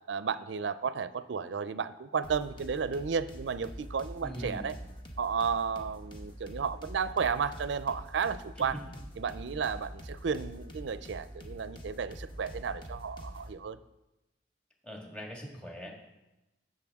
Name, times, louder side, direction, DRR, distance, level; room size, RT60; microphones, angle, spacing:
voice 1, 0.1-4.8 5.2-8.8 9.2-13.8, right 6 dB, 75° right, 15 dB, 0.4 m, -33 dB
sound 1, 2.2-13.5, equal, 25° left, 1.0 m, -45 dB
voice 2, 4.2-4.7 8.7-8.9 14.8-15.9, equal, 5° left, 0 dB, 1.6 m, -41 dB
15.0 x 6.6 x 3.6 m, 0.99 s
head